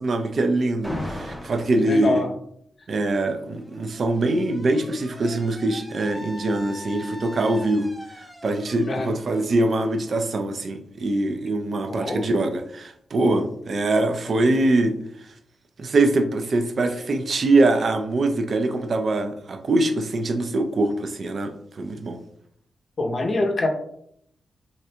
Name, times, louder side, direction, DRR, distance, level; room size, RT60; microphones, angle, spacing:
voice 1, 0.0-2.2 2.9-14.9 15.8-22.2, right 2 dB, 55° right, 0.4 m, -23 dB
Alarm, 0.8-1.8 3.0-10.7, left 1 dB, ahead, 0.6 m, -39 dB
voice 2, 1.8-2.3 8.9-9.1 11.9-12.2 23.0-23.7, left 2 dB, 50° left, 0.6 m, -24 dB
3.2 x 2.4 x 2.7 m
cardioid pair, 70°, 0 cm